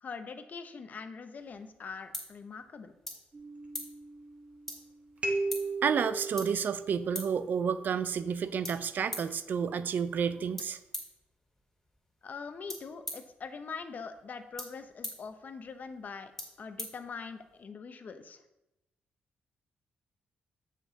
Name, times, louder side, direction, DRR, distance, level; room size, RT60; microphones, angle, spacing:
voice 1, 0.0-3.0 12.2-16.3 16.6-18.4, left 5 dB, 50° left, 9 dB, 0.7 m, -43 dB
sound 1, 1.4-17.6, left 1 dB, 10° left, 2.5 m, -47 dB
sound 2, 3.3-4.7 5.2-7.9, right 3 dB, 40° right, 1.4 m, -37 dB
voice 2, 5.8-10.8, right 7 dB, 60° right, 14 dB, 0.4 m, -30 dB
7.0 x 6.0 x 3.9 m, 0.92 s
cardioid pair, 80°, 4 cm